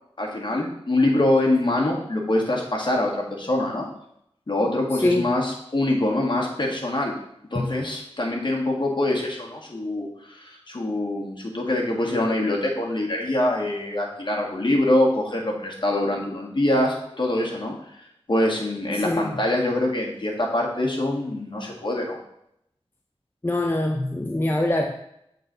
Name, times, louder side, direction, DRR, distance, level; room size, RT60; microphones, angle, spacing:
voice 1, 0.2-3.9 4.5-7.1 7.5-17.7 18.3-22.2, left 1 dB, 50° left, -1 dB, 1.7 m, -24 dB
voice 2, 4.9-5.3 7.5-7.7 18.9-19.4 23.4-24.9, left 1 dB, 20° left, 3 dB, 0.5 m, -24 dB
7.8 x 4.0 x 3.9 m, 0.77 s
wide cardioid pair, 60°, 11 cm